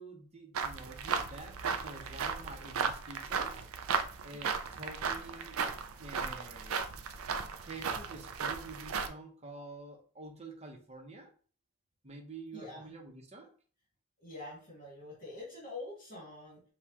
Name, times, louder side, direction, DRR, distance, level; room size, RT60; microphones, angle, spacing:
voice 1, 0.0-3.7 4.2-5.6 6.0-6.8 7.6-11.3 12.0-13.5, right 2 dB, 30° right, 1 dB, 0.9 m, -48 dB
sound 1, 0.5-9.1, right 6 dB, 70° right, 0.4 m, -36 dB
voice 2, 12.5-12.8 14.2-16.6, left 2 dB, 40° left, -6 dB, 2.1 m, -45 dB
6.8 x 2.4 x 2.9 m, 0.41 s
head